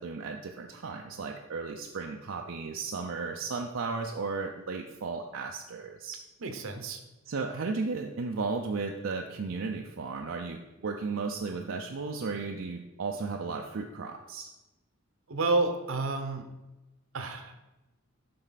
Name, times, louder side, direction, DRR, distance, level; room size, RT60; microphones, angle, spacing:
voice 1, 0.0-6.2 7.3-14.5, right 4 dB, 70° right, 2 dB, 0.5 m, -35 dB
voice 2, 6.4-7.0 15.3-16.5 17.1-17.6, right 3 dB, 85° right, 6 dB, 0.9 m, -30 dB
7.6 x 5.5 x 4.0 m, 1.0 s
head